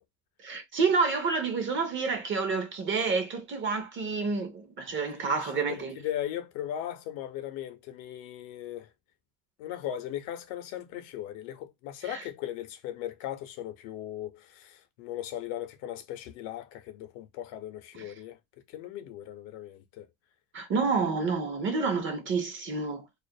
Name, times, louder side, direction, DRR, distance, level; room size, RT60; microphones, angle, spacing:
voice 1, 0.4-6.0 12.1-12.2 20.5-23.1, right 4 dB, 30° right, 0.5 m, -29 dB
voice 2, 4.9-8.9 9.6-20.1, left 11 dB, 70° left, 0.7 m, -38 dB
2.4 x 2.0 x 2.6 m
cardioid pair, 145°, 42 cm